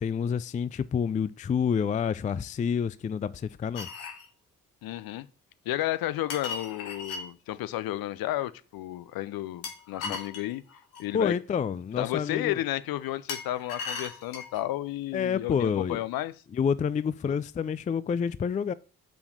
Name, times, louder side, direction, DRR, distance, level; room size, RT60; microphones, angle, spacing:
voice 1, 0.0-3.9 10.0-10.2 11.1-12.6 15.1-16.0 16.5-18.7, left 7 dB, 20° left, 0.4 m, -28 dB
sound 1, 3.7-4.3 6.3-7.2 9.6-11.1 13.3-14.6, left 5 dB, 75° left, 1.8 m, -37 dB
voice 2, 4.8-5.3 5.6-10.6 11.0-11.3 12.0-16.3 17.2-17.3, left 14 dB, 55° left, 0.8 m, -32 dB
6.3 x 5.7 x 6.6 m
figure-of-eight pair, 40°, 43 cm